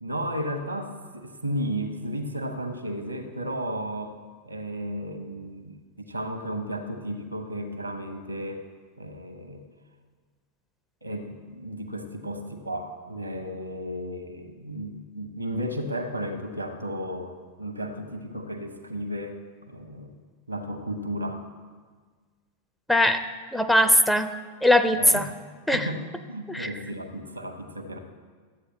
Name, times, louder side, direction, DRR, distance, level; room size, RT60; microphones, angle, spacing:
voice 1, 0.0-4.2 4.4-8.6 9.0-9.6 11.0-19.4 19.7-20.1 20.5-21.4 24.9-25.4 25.7-26.0 26.3-28.0, equal, 85° right, 6 dB, 1.0 m, -34 dB
voice 2, 22.9-23.2 23.5-24.3 24.6-25.3 25.7-25.9 26.5-26.7, left 1 dB, 5° left, 8 dB, 0.4 m, -20 dB
13.0 x 8.1 x 3.1 m, 1.5 s
figure-of-eight pair, 90°, 0 cm